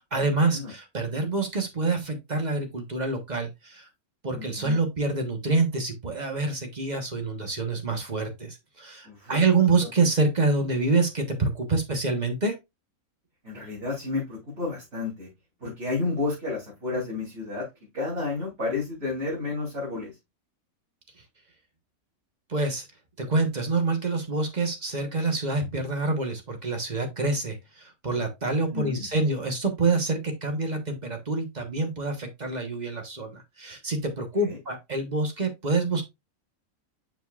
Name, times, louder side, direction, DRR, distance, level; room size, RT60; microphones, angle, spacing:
voice 1, 0.1-3.9 4.2-12.6 22.5-22.9 23.2-36.0, right 3 dB, 30° right, 1.2 m, -26 dB
voice 2, 4.3-4.8 9.0-9.4 9.8-9.9 13.4-15.3 15.6-17.7 17.9-20.1 28.5-29.1 34.4-34.6, left 3 dB, 50° right, 3.3 m, -31 dB
7.2 x 5.8 x 2.4 m
omnidirectional pair, 1.5 m